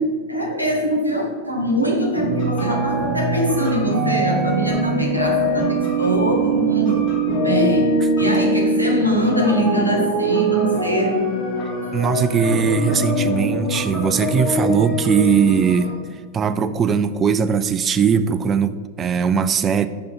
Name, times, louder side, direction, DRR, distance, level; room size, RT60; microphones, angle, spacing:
voice 1, 0.0-7.1 7.4-11.3, right 1 dB, 90° right, 1 dB, 0.9 m, -22 dB
sound 1, 2.2-15.9, right 1 dB, 35° left, 1.8 m, -22 dB
voice 2, 11.9-15.9 16.3-19.9, right 6 dB, 25° right, 12 dB, 0.3 m, -19 dB
5.3 x 5.2 x 4.3 m, 1.4 s
figure-of-eight pair, 90°, 0 cm